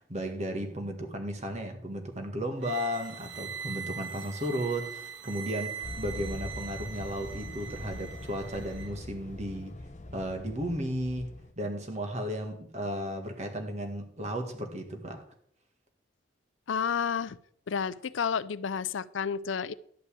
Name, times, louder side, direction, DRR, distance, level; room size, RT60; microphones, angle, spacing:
voice 1, 0.0-9.7 10.1-15.2, equal, 35° right, 1.7 m, -34 dB
sound 1, 2.6-8.9, right 7 dB, 65° right, 1.7 m, -41 dB
sound 2, 5.8-11.5, left 2 dB, 35° left, 0.7 m, -42 dB
voice 2, 16.7-17.4 17.7-19.7, left 6 dB, 75° left, 0.5 m, -30 dB
11.0 x 5.4 x 8.5 m
head